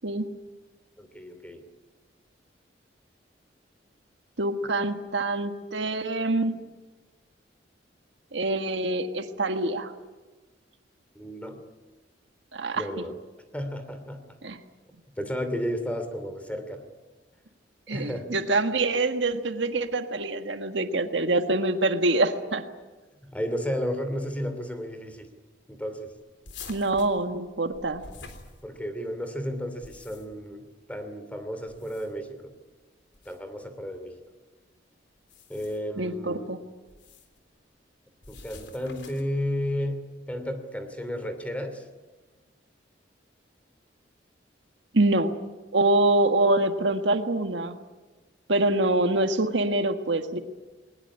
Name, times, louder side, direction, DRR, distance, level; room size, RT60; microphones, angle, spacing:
voice 1, 1.0-1.6 11.1-11.6 12.7-13.2 13.5-14.4 15.1-16.8 17.9-18.3 23.2-25.3 25.7-26.1 28.6-32.5 33.2-34.2 35.5-36.5 38.3-41.9, equal, 10° left, 8 dB, 2.8 m, -33 dB
voice 2, 4.4-6.5 8.3-9.9 12.5-12.8 14.4-14.6 17.9-22.7 26.7-28.0 36.0-36.6 44.9-45.3 45.7-47.8 48.5-50.4, right 2 dB, 75° right, 7 dB, 1.6 m, -25 dB
sound 1, 26.4-29.1 29.6-30.5 31.6-32.3 33.1-33.4 35.2-35.9 36.9-37.4 38.2-39.4, left 4 dB, 75° left, 3.6 m, -47 dB
20.5 x 20.0 x 9.8 m, 1.3 s
head